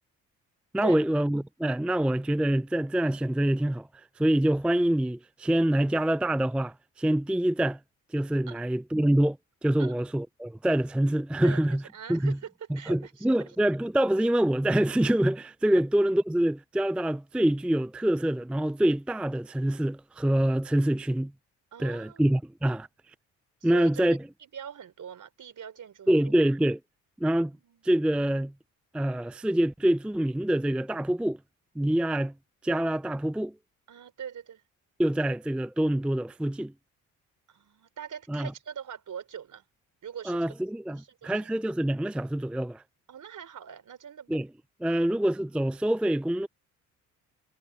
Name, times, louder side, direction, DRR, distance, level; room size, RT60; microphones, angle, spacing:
voice 1, 0.7-7.8 8.1-11.8 12.1-12.4 12.7-21.3 21.8-22.9 23.6-24.3 26.1-26.8 27.2-27.6 27.8-28.5 28.9-31.4 31.8-32.3 32.6-33.6 35.0-36.7 38.3-38.5 40.3-42.8 44.3-44.5 44.8-46.5, right 1 dB, 5° right, 0.4 m, -26 dB
voice 2, 11.9-13.3 21.7-22.3 23.6-23.9 24.4-26.1 27.6-27.8 33.9-34.6 37.5-39.6 40.0-40.4 41.0-41.5 43.1-44.4 44.9-45.1, right 8 dB, 55° right, 4.4 m, -43 dB
hypercardioid pair, 55°, 36 cm